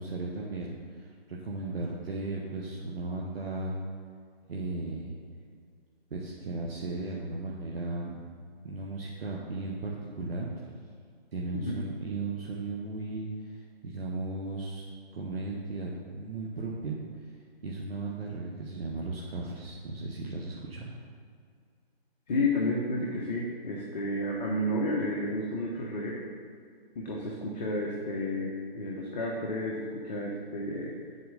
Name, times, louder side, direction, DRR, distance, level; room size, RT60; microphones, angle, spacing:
voice 1, 0.0-3.8 4.5-5.1 6.1-8.2 8.6-10.5 11.3-17.0 17.6-21.0, right 3 dB, 65° right, -3 dB, 1.3 m, -36 dB
voice 2, 22.3-26.3 26.9-30.9, left 1 dB, 40° left, -3 dB, 1.2 m, -31 dB
7.9 x 4.5 x 6.9 m, 2.2 s
figure-of-eight pair, 150°, 31 cm